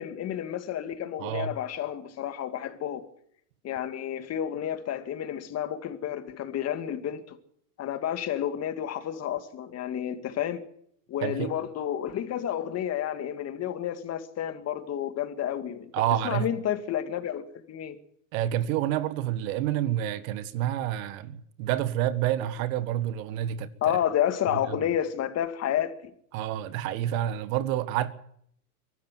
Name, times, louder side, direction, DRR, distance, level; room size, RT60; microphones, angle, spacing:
voice 1, 0.0-3.1 3.6-7.4 7.8-10.6 11.1-15.9 16.2-18.0 23.8-26.1, left 10 dB, 30° left, 2.3 m, -30 dB
voice 2, 1.2-1.5 11.2-11.5 15.9-16.5 18.3-24.0 24.7-24.8 26.3-28.1, right 12 dB, 55° right, 1.8 m, -28 dB
23.5 x 12.5 x 9.2 m
hypercardioid pair, 120°, 47 cm